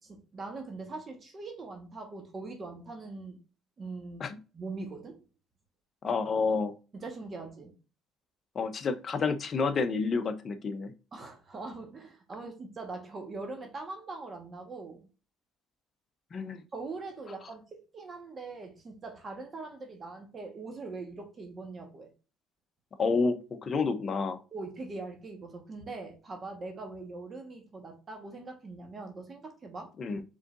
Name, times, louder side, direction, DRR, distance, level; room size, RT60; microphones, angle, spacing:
voice 1, 0.1-3.4 3.8-5.2 6.9-7.7 11.1-15.1 16.7-22.1 24.5-29.9, right 3 dB, 35° right, 1.3 m, -42 dB
voice 2, 6.0-6.7 8.5-10.9 16.3-16.6 23.0-24.4 30.0-30.2, left 4 dB, 40° left, 0.7 m, -29 dB
4.9 x 3.8 x 2.5 m
supercardioid pair, 95°, 0 cm